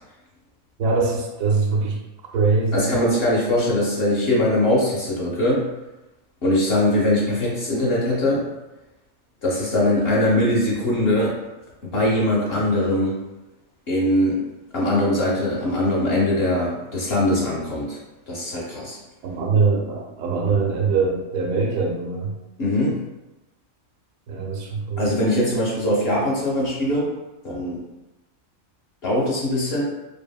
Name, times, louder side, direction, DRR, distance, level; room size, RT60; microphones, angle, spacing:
voice 1, 0.8-2.0 2.3-2.9 19.2-22.3 24.3-25.0, right 4 dB, 80° right, 0 dB, 1.0 m, -22 dB
voice 2, 2.7-5.7 6.4-8.5 9.4-11.4 11.8-13.2 13.9-14.4 14.7-18.0 18.3-19.0 22.6-23.0 25.0-27.1 27.4-27.8 29.0-29.8, left 1 dB, 60° left, -5 dB, 0.7 m, -21 dB
2.7 x 2.7 x 2.2 m, 1.0 s
omnidirectional pair, 1.4 m